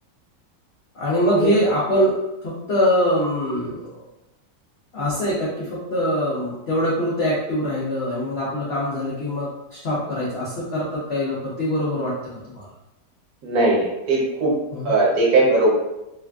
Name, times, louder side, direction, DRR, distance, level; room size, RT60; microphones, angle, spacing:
voice 1, 0.9-3.9 4.9-12.1 12.5-12.6 14.7-14.9, equal, 85° left, -7 dB, 0.5 m, -23 dB
voice 2, 13.4-14.5 14.8-15.7, right 2 dB, 65° right, -4 dB, 1.1 m, -19 dB
3.4 x 2.4 x 2.3 m, 0.92 s
omnidirectional pair, 2.0 m